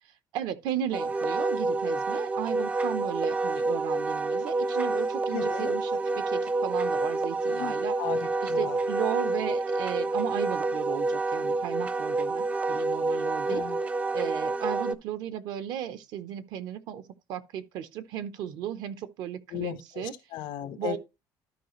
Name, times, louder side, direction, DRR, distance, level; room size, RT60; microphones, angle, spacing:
voice 1, 0.3-8.0 8.4-13.6 14.1-17.0 17.3-20.1 20.8-21.0, right 10 dB, 65° right, 0.8 m, -35 dB
Wind instrument woodwind instrument, 0.9-15.0, right 3 dB, 15° right, 0.3 m, -28 dB
voice 2, 5.3-5.8 7.6-8.8 13.5-13.8 19.5-21.0, left 13 dB, 75° left, 0.8 m, -36 dB
12.0 x 5.0 x 3.1 m
cardioid pair, 170°, 8 cm